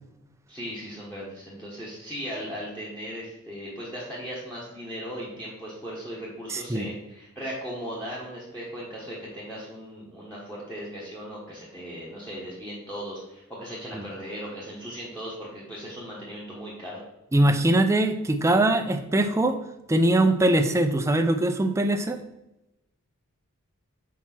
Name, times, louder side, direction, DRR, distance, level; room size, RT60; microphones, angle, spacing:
voice 1, 0.5-17.0, equal, 5° left, -7 dB, 1.2 m, -37 dB
voice 2, 6.5-6.9 13.9-14.1 17.3-19.6 19.9-22.2, right 1 dB, 15° right, 7 dB, 0.4 m, -22 dB
4.6 x 4.5 x 5.9 m, 0.92 s
head